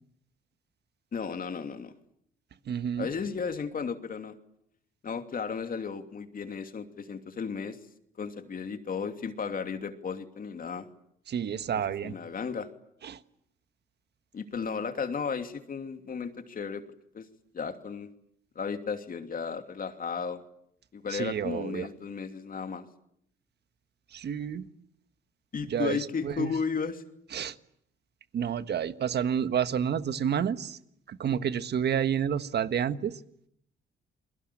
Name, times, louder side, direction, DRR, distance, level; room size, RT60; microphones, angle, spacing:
voice 1, 1.1-1.9 3.0-4.3 5.0-7.8 8.2-10.9 12.0-12.7 14.3-16.8 17.1-17.3 17.5-18.1 18.5-20.4 20.9-22.9 25.5-27.0, left 6 dB, 45° left, 7 dB, 2.8 m, -34 dB
voice 2, 2.7-3.1 11.3-12.1 13.0-13.2 21.1-21.9 24.1-24.6 25.7-26.5 27.3-27.5 28.3-30.8 31.1-33.2, right 8 dB, 55° right, 12 dB, 1.5 m, -29 dB
29.5 x 22.5 x 8.7 m, 0.72 s
cardioid pair, 90°, 20 cm